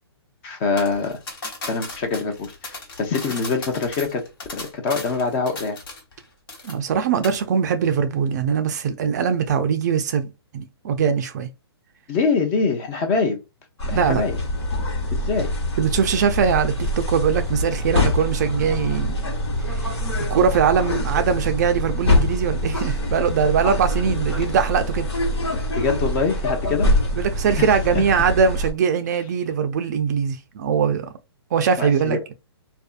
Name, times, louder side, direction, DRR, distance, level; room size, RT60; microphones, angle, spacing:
voice 1, 0.4-1.2 1.7-4.2 4.5-5.8 12.1-13.4 13.9-14.4 15.1-15.5 25.8-26.9 27.6-28.0 31.8-32.2, left 4 dB, 25° left, 0.6 m, -24 dB
sound 1, 0.8-6.2 6.5-7.0 7.2-7.4, left 2 dB, 55° left, 1.1 m, -36 dB
voice 2, 6.6-11.5 13.9-14.2 15.8-19.2 19.7-19.8 20.3-25.1 26.6-31.1 31.5-32.2, right 7 dB, 40° right, 0.4 m, -21 dB
sound 2, 13.8-28.7, left 1 dB, 80° left, 1.2 m, -24 dB
2.6 x 2.2 x 2.4 m
hypercardioid pair, 150°, 14 cm